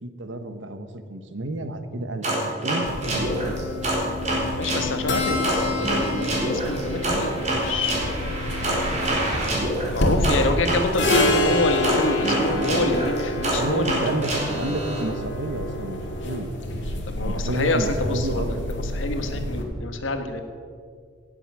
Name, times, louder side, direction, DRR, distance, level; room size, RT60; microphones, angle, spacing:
voice 1, 0.0-3.7 4.4-4.5 13.5-16.5 16.7-18.6, right 1 dB, 75° right, 8 dB, 1.2 m, -31 dB
sound 1, 2.2-4.9 5.4-11.3 11.8-15.0, right 1 dB, 40° right, 3.8 m, -26 dB
sound 2, 2.8-19.6, left 1 dB, 70° left, 2.1 m, -28 dB
voice 2, 4.5-8.3 9.9-14.0 14.5-14.7 17.1-20.4, left 2 dB, 90° left, 6 dB, 1.5 m, -27 dB
18.0 x 8.1 x 6.2 m, 2.2 s
head